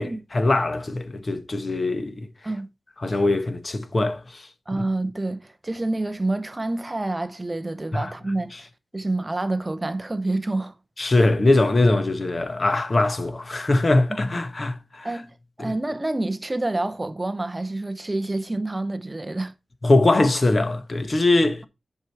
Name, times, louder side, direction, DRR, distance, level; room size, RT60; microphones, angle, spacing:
voice 1, 0.0-2.3 3.0-4.8 7.9-8.1 11.0-15.1 15.6-15.7 19.8-21.7, left 2 dB, 30° left, 1.0 m, -22 dB
voice 2, 4.7-8.7 8.9-10.8 14.3-14.4 15.0-19.5, right 2 dB, 15° right, 0.6 m, -28 dB
10.5 x 4.6 x 4.5 m
wide cardioid pair, 175°, 0 cm